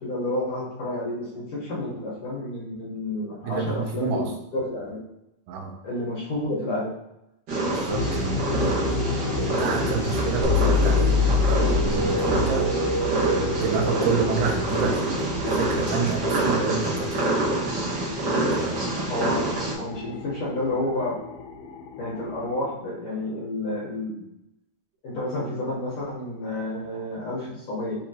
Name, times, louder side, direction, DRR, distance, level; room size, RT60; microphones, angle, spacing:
voice 1, 0.0-5.0 5.8-6.9 19.1-21.2 22.0-24.2 25.0-28.0, left 1 dB, 60° left, -8 dB, 1.6 m, -30 dB
voice 2, 3.4-4.3 5.5-5.7 7.7-17.3 18.6-19.0, right 5 dB, 85° right, 2 dB, 2.3 m, -30 dB
Purr, 7.5-19.7, right 2 dB, 50° right, 1.4 m, -27 dB
sound 1, 7.9-22.7, left 3 dB, 85° left, 2.2 m, -31 dB
sound 2, 10.4-15.2, left 3 dB, 70° right, 1.8 m, -24 dB
6.4 x 2.9 x 2.8 m, 0.86 s
omnidirectional pair, 3.7 m